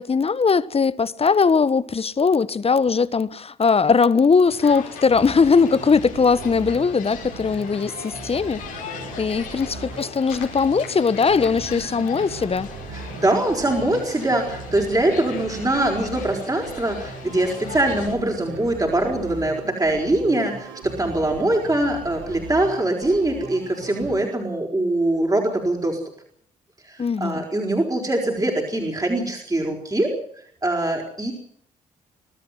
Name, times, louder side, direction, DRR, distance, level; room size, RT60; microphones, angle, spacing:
voice 1, 0.0-8.6 9.2-12.7 27.0-27.4, left 5 dB, 35° left, 1.2 m, -20 dB
sound 1, 4.5-18.2, left 6 dB, 85° left, 4.6 m, -39 dB
sound 2, 5.1-24.2, right 5 dB, 75° right, 2.9 m, -39 dB
voice 2, 12.9-26.0 26.9-30.1 30.6-31.3, right 1 dB, 20° right, 5.4 m, -23 dB
24.0 x 13.0 x 9.6 m
hypercardioid pair, 45°, 17 cm